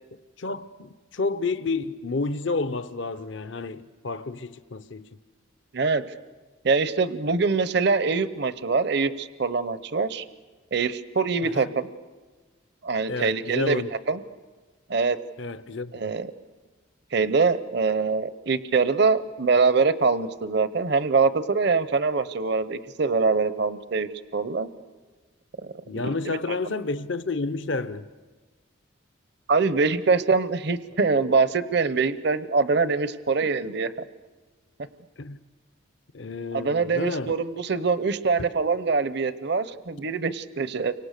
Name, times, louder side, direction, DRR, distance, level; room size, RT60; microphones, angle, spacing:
voice 1, 0.4-5.2 11.4-11.7 13.1-13.9 15.4-16.1 25.9-28.1 35.2-35.4 36.1-37.4 38.4-38.5, left 3 dB, 65° left, 0.8 m, -30 dB
voice 2, 5.7-6.1 6.6-10.3 10.7-11.9 12.8-14.2 14.9-15.2 15.9-16.3 17.1-24.7 25.6-25.7 26.0-26.6 29.5-33.9 36.5-40.9, right 4 dB, 55° right, 0.8 m, -24 dB
30.0 x 25.0 x 6.7 m
head